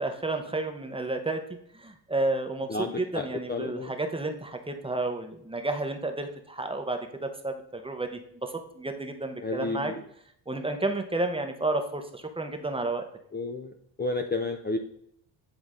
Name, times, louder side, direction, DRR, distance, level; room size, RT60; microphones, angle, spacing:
voice 1, 0.0-1.4 1.7-9.9 10.5-13.0, right 2 dB, 10° right, 6 dB, 0.7 m, -31 dB
voice 2, 2.7-3.9 9.4-10.0 13.3-13.7 14.0-14.8, left 3 dB, 20° left, 4 dB, 0.5 m, -31 dB
9.4 x 3.8 x 3.6 m, 0.70 s
cardioid pair, 105°, 46 cm